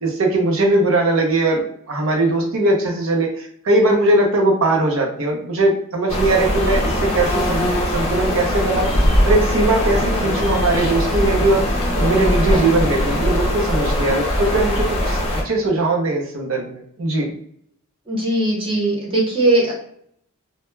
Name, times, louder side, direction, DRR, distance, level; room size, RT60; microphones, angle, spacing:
voice 1, 0.0-8.9 9.2-11.6 11.9-17.3, right 2 dB, 65° right, 1 dB, 0.6 m, -20 dB
sound 1, 6.1-15.4, left 1 dB, 30° left, 0.5 m, -20 dB
voice 2, 18.1-19.7, right 2 dB, 25° right, -4 dB, 0.7 m, -19 dB
2.1 x 2.1 x 3.1 m, 0.65 s
head